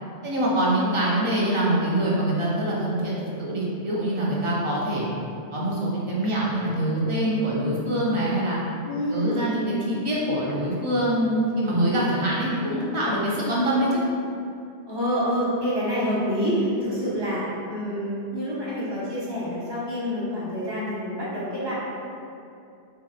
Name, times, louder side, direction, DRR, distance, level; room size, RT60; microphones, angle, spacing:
voice 1, 0.2-5.1 5.5-8.6 9.1-14.0, right 1 dB, 50° right, -6 dB, 0.3 m, -24 dB
voice 2, 8.8-9.5 14.9-21.7, equal, 25° right, -9 dB, 0.7 m, -27 dB
3.3 x 2.7 x 2.3 m, 2.5 s
omnidirectional pair, 1.2 m